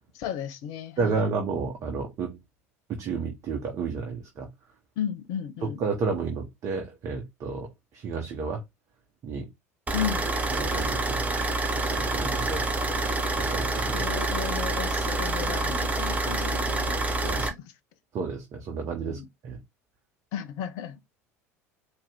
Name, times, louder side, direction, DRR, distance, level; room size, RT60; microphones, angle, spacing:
voice 1, 0.1-1.3 5.0-5.8 9.9-10.4 13.9-17.6 19.1-19.3 20.3-21.0, left 9 dB, 55° left, 0.8 m, -34 dB
voice 2, 1.0-2.4 2.9-4.5 5.6-8.6 9.2-9.5 10.5-11.2 11.9-12.7 13.4-14.1 17.2-17.4 18.1-19.6, right 4 dB, 40° right, 1.3 m, -31 dB
sound 1, 9.9-17.5, right 2 dB, 15° right, 1.1 m, -27 dB
4.7 x 3.1 x 3.6 m
figure-of-eight pair, 70°, 8 cm